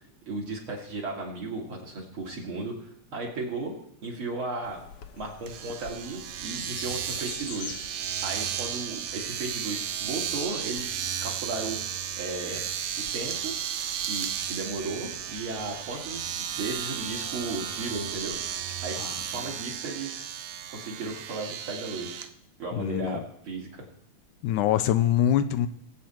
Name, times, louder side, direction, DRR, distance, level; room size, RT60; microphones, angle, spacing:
voice 1, 0.3-3.7 4.0-4.8 5.1-7.8 8.2-10.9 11.2-12.7 13.1-13.5 14.0-18.4 18.8-19.0 19.3-20.3 20.7-22.2 22.6-23.8, right 3 dB, 45° right, -1 dB, 3.1 m, -35 dB
sound 1, 4.6-18.8, left 6 dB, 60° left, 1.5 m, -48 dB
Domestic sounds home sounds, 5.5-22.3, right 9 dB, 75° right, 1.4 m, -34 dB
voice 2, 22.7-23.2 24.4-25.7, left 11 dB, 85° left, 11 dB, 2.1 m, -24 dB
21.0 x 8.3 x 4.4 m, 0.71 s
omnidirectional pair, 3.6 m